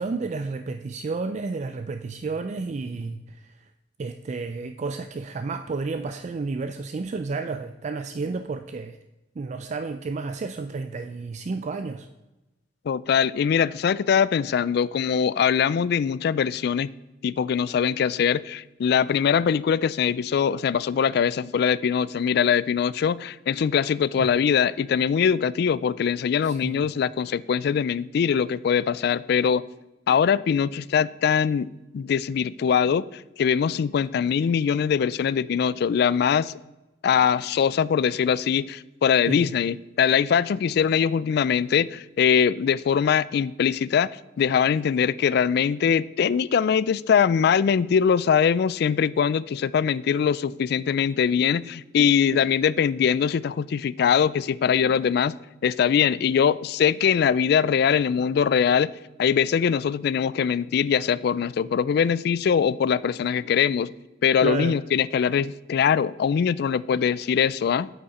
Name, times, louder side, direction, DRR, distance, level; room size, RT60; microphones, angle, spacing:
voice 1, 0.0-3.7 4.0-9.0 9.4-12.1 24.2-24.3 26.4-26.9 39.3-39.5 52.3-52.8 64.4-64.8, right 4 dB, 40° right, 9 dB, 0.4 m, -31 dB
voice 2, 12.9-16.9 17.2-29.6 30.1-36.5 37.0-44.1 44.4-55.4 55.6-58.9 59.2-63.9 64.2-67.9, left 7 dB, 60° left, 19 dB, 0.3 m, -22 dB
8.5 x 8.2 x 4.2 m, 1.0 s
head